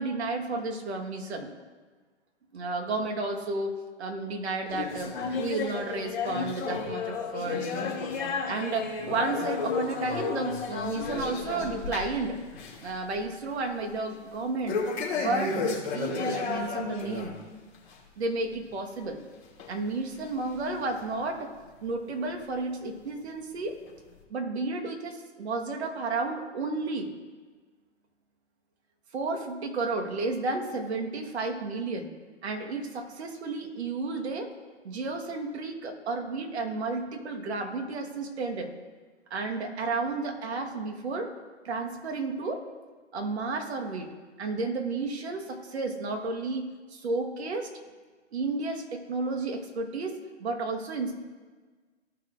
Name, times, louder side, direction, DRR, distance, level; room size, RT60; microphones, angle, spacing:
voice 1, 0.0-1.5 2.5-7.7 8.5-12.4 12.8-14.8 15.1-17.4 18.2-19.2 19.7-21.5 21.8-23.7 24.3-27.1 29.1-32.1 32.4-34.5 34.8-38.7 39.3-41.3 41.6-42.6 43.1-44.1 44.4-47.7 48.3-51.1, right 3 dB, 60° right, 2 dB, 1.6 m, -32 dB
sound 1, 4.7-12.2 12.5-12.9 13.2-13.3 14.7-17.3 17.7-17.9 18.6-18.7 19.6-19.7 20.5-20.6, left 4 dB, 40° left, 2.5 m, -32 dB
14.5 x 6.0 x 2.6 m, 1.4 s
hypercardioid pair, 135°, 36 cm